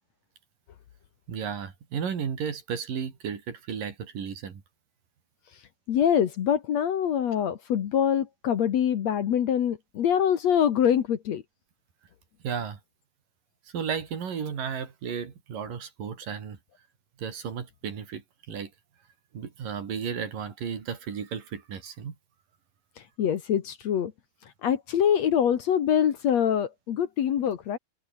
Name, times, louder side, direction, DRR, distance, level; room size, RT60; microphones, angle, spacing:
voice 1, 1.3-4.6 12.4-12.8 13.7-16.6 17.2-18.7 19.3-22.1, right 7 dB, 70° right, 4.9 m, -34 dB
voice 2, 5.9-11.4 23.2-24.1 24.6-27.8, left 9 dB, 60° left, 2.3 m, -24 dB
omnidirectional pair, 4.0 m